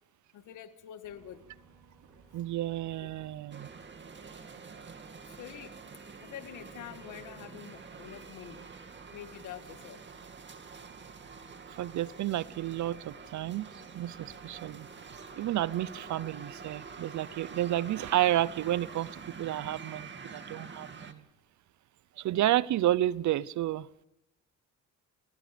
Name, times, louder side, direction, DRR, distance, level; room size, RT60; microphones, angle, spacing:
voice 1, 0.3-1.5 3.0-3.1 5.3-5.8 6.2-8.6 9.1-10.0, left 10 dB, 85° left, 9 dB, 1.8 m, -46 dB
sound 1, 1.0-19.6, right 5 dB, 90° right, 4.5 m, -59 dB
voice 2, 2.3-3.7 11.8-13.7 13.9-14.9 15.4-19.1 19.4-21.2 22.2-23.9, right 13 dB, 70° right, 20 dB, 0.8 m, -31 dB
sound 2, 3.5-21.1, right 5 dB, 40° right, 2.3 m, -47 dB
29.5 x 18.0 x 5.2 m, 0.87 s
cardioid pair, 90°, 30 cm